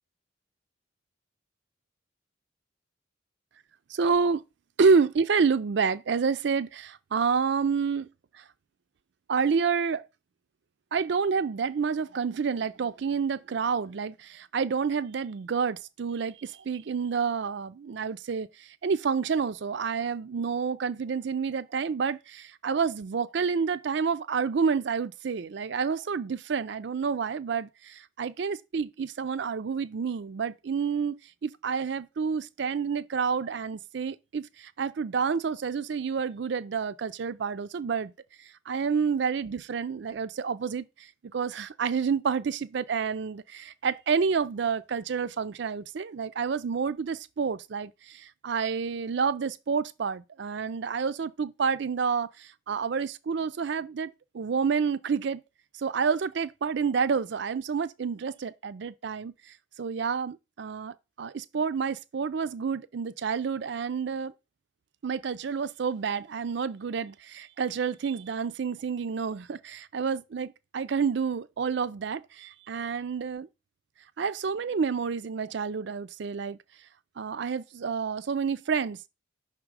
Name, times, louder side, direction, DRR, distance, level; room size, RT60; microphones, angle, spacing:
voice 1, 3.9-4.4 4.8-8.1 9.3-10.0 10.9-38.1 38.7-41.1 41.3-55.4 55.8-64.3 65.0-73.5 74.2-76.6 77.2-79.1, right 5 dB, 60° right, 0.4 m, -29 dB
5.8 x 3.7 x 4.7 m
head